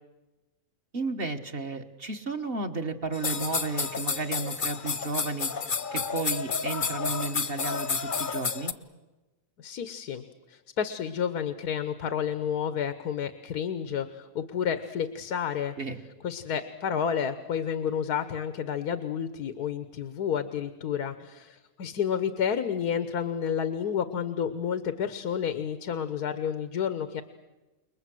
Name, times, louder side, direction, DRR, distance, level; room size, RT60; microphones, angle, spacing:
voice 1, 0.9-5.5 5.9-8.7 15.8-16.0, right 3 dB, 40° right, 5 dB, 1.6 m, -33 dB
sound 1, 3.1-8.7, left 5 dB, 40° left, 1.0 m, -30 dB
voice 2, 9.6-15.7 16.2-27.2, left 8 dB, 85° left, 11 dB, 1.6 m, -30 dB
29.0 x 21.5 x 7.8 m, 1.1 s
omnidirectional pair, 1.6 m